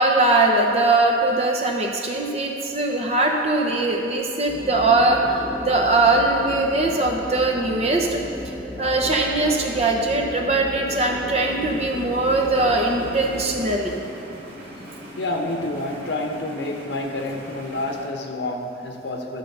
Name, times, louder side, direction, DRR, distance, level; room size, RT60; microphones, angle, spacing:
voice 1, 0.0-8.2 8.8-14.0, right 2 dB, 35° right, 1 dB, 0.9 m, -21 dB
sound 1, 4.5-13.7, left 1 dB, 10° left, 1.0 m, -34 dB
sound 2, 11.5-18.1, equal, 70° right, 2.1 m, -40 dB
voice 2, 15.2-19.4, left 2 dB, 80° left, 3 dB, 1.0 m, -28 dB
12.0 x 4.1 x 6.7 m, 2.8 s
head